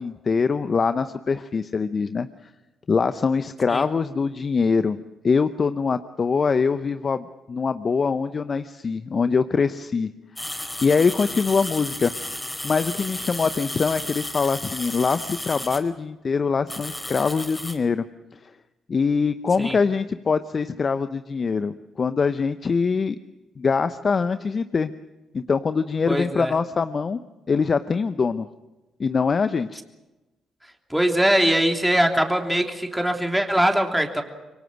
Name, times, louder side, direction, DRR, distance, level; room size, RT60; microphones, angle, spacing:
voice 1, 0.0-2.3 2.9-5.0 5.2-10.1 10.8-12.1 12.6-18.0 18.3-18.5 18.9-23.2 23.6-24.9 25.3-27.2 27.5-28.5 29.0-29.8, left 5 dB, 45° left, 11 dB, 0.8 m, -23 dB
sound 1, 10.4-15.8 16.7-17.8, left 1 dB, 10° left, 4.5 m, -33 dB
voice 2, 26.1-26.5 30.9-34.2, right 1 dB, 5° right, 3 dB, 3.2 m, -21 dB
26.0 x 23.5 x 6.4 m, 1.1 s
hypercardioid pair, 45°, 0 cm